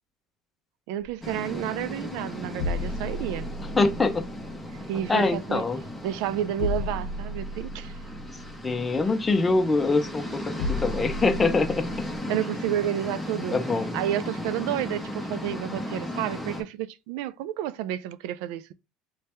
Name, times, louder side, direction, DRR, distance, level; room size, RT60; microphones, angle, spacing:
voice 1, 0.9-3.5 4.7-5.6 6.0-8.0 12.3-13.6 13.9-18.7, right 12 dB, 70° right, 0.3 m, -30 dB
sound 1, 1.0-12.2, left 2 dB, 80° left, 0.6 m, -35 dB
sound 2, 1.2-16.6, left 1 dB, 5° right, 1.1 m, -36 dB
voice 2, 3.8-4.3 5.1-5.8 8.6-12.1 13.5-13.9, left 3 dB, 15° left, 0.6 m, -24 dB
3.1 x 2.8 x 3.4 m
supercardioid pair, 130°, 0 cm